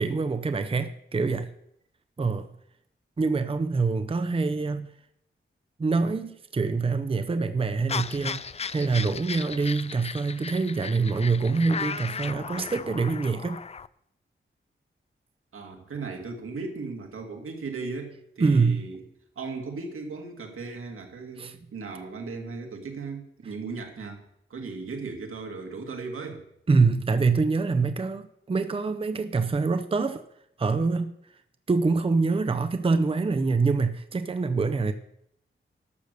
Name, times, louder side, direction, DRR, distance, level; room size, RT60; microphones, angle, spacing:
voice 1, 0.0-1.5 2.2-2.5 3.2-4.9 5.8-8.4 8.7-13.6 18.4-18.9 21.4-21.6 26.7-30.2 30.6-31.1 31.7-34.9, right 4 dB, 25° right, 10 dB, 0.6 m, -25 dB
sound 1, 7.9-13.9, left 5 dB, 30° left, 0.4 m, -36 dB
voice 2, 15.5-19.0 19.4-24.2 24.5-26.4, right 4 dB, 85° right, 3 dB, 2.2 m, -37 dB
12.0 x 6.5 x 6.7 m, 0.75 s
wide cardioid pair, 120°, 21 cm